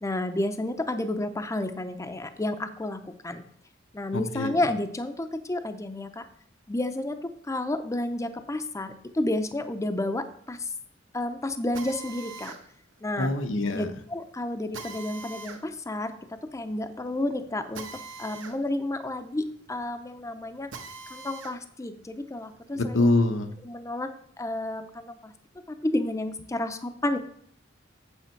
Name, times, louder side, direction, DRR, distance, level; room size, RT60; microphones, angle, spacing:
voice 1, 0.0-3.4 3.9-6.3 6.7-7.2 7.5-10.7 11.1-12.5 13.0-13.3 13.7-13.8 14.1-16.1 16.5-17.9 18.2-20.7 21.1-23.1 23.6-24.1 24.4-25.3 25.7-27.2, left 1 dB, 15° left, 9 dB, 0.5 m, -31 dB
voice 2, 4.1-4.6 13.2-13.9 22.7-23.5, left 2 dB, 85° left, 7 dB, 0.9 m, -25 dB
Drill, 11.7-21.6 22.0-23.6, right 4 dB, 75° right, 1.2 m, -45 dB
8.3 x 7.1 x 4.5 m, 0.64 s
head